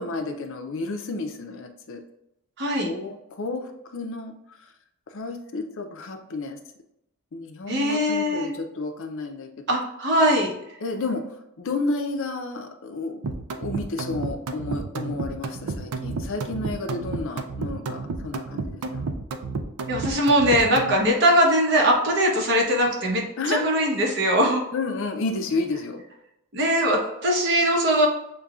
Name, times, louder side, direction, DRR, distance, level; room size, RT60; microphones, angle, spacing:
voice 1, 0.0-2.0 2.8-4.3 5.1-6.6 7.3-9.8 10.8-11.2 11.6-13.2 13.6-19.1 23.4-23.6 24.7-26.0, left 3 dB, 60° left, 6 dB, 0.5 m, -31 dB
voice 2, 2.6-2.9 7.7-8.5 9.7-10.5 19.9-24.6 26.5-28.1, equal, 55° right, 0 dB, 1.0 m, -21 dB
sound 1, 13.2-21.0, right 3 dB, 85° right, 0.4 m, -31 dB
6.6 x 2.2 x 2.4 m, 0.83 s
head